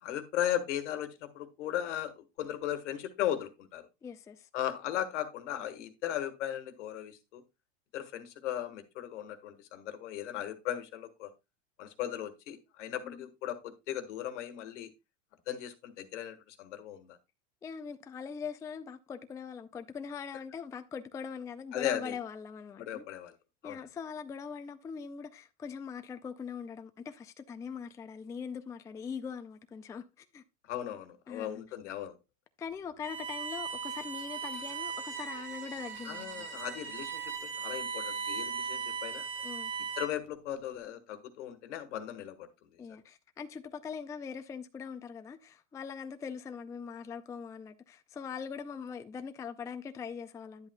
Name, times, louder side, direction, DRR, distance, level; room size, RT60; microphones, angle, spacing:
voice 1, 0.0-3.9 4.5-7.4 7.9-11.3 11.8-14.9 15.5-17.2 21.7-22.2 22.8-23.4 23.6-23.8 30.7-32.2 36.0-39.2 40.0-42.8, left 11 dB, 75° left, 1.5 m, -37 dB
voice 2, 4.0-4.5 13.0-13.3 17.6-23.1 23.6-30.4 31.3-31.6 32.6-36.5 39.4-39.7 42.8-50.7, left 6 dB, 10° left, 0.4 m, -42 dB
Bowed string instrument, 33.0-40.3, right 6 dB, 80° right, 1.8 m, -38 dB
10.5 x 7.9 x 2.2 m
supercardioid pair, 120°, 36 cm